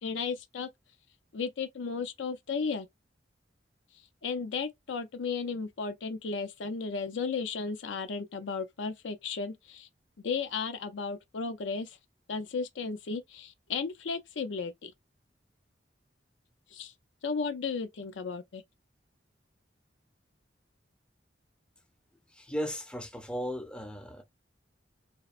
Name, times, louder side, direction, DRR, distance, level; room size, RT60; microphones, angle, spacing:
voice 1, 0.0-0.7 1.3-2.9 4.2-9.9 10.2-12.0 12.3-14.9 16.7-16.9 17.2-18.6, left 5 dB, 85° left, 0.5 m, -34 dB
voice 2, 22.3-24.2, equal, 5° left, 0.5 m, -36 dB
2.8 x 2.0 x 2.3 m
head